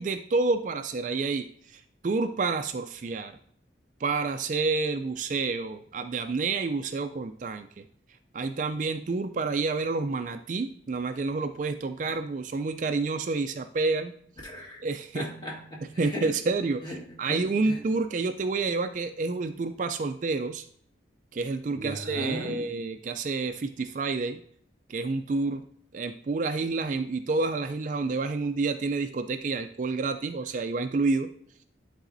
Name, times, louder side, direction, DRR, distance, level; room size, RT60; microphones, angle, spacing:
voice 1, 0.0-3.4 4.0-7.8 8.3-14.1 14.8-15.3 16.0-16.9 17.2-20.6 21.3-24.4 24.9-25.6 25.9-31.3, right 3 dB, 40° right, 9 dB, 0.3 m, -29 dB
voice 2, 14.4-14.8 15.1-16.3 16.8-17.8 21.7-22.6, equal, 25° left, -2 dB, 1.6 m, -37 dB
10.5 x 4.0 x 2.6 m, 0.64 s
head